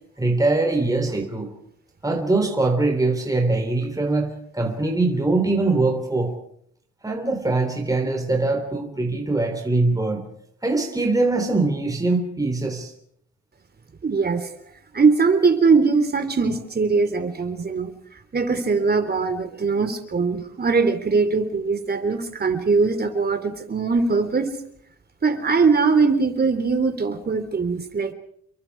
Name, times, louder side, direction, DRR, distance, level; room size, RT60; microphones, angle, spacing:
voice 1, 0.2-1.5 2.0-6.4 7.0-10.2 10.6-12.9, right 2 dB, 10° right, 3 dB, 3.6 m, -22 dB
voice 2, 14.0-14.5 14.9-17.9 18.3-24.5 25.2-28.1, right 4 dB, 30° right, 7 dB, 3.7 m, -21 dB
29.5 x 23.0 x 4.8 m, 0.68 s
cardioid pair, 90°, 30 cm